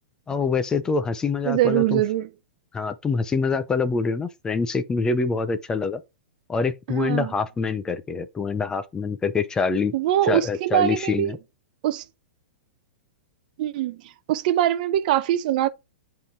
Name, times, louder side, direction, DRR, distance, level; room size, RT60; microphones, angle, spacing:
voice 1, 0.3-2.0 2.7-6.0 6.5-9.9 10.3-11.4, left 4 dB, 10° left, 0.5 m, -25 dB
voice 2, 1.4-2.3 6.9-7.3 9.9-11.4 11.8-12.0 13.6-15.7, right 13 dB, 50° right, 0.6 m, -23 dB
8.3 x 3.7 x 3.4 m
hypercardioid pair, 150°, 6 cm